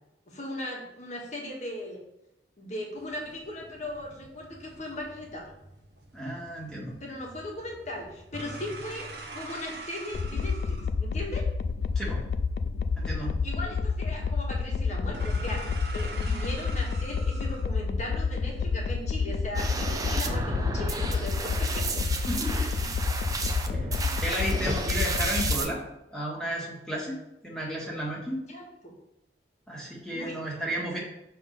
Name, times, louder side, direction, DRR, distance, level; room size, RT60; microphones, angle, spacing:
voice 1, 0.3-2.0 2.6-5.5 7.0-11.5 13.4-22.0 22.5-22.9 23.9-24.2 28.5-28.9 30.1-30.4, left 1 dB, 40° left, -1 dB, 1.5 m, -38 dB
sound 1, 3.0-19.1, right 2 dB, 60° right, 0.9 m, -46 dB
voice 2, 6.1-7.0 11.9-12.2 13.0-13.3 22.3-22.9 23.8-23.9 24.1-25.8 26.1-28.4 29.7-31.0, equal, 5° left, -5 dB, 1.7 m, -33 dB
sound 2, 10.1-25.6, left 4 dB, 65° left, 0.4 m, -29 dB
sound 3, 19.5-25.7, right 3 dB, 20° right, 0.5 m, -33 dB
6.5 x 3.6 x 5.2 m, 0.87 s
head